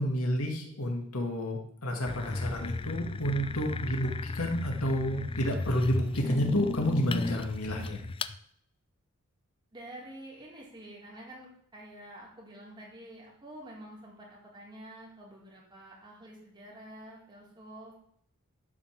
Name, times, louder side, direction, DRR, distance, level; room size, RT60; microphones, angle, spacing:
voice 1, 0.0-8.0, equal, 85° left, 1 dB, 2.2 m, -30 dB
sound 1, 2.1-8.4, left 3 dB, 25° left, 0.4 m, -35 dB
voice 2, 9.7-17.9, right 1 dB, 20° right, -4 dB, 4.1 m, -48 dB
12.0 x 5.6 x 7.5 m, 0.66 s
head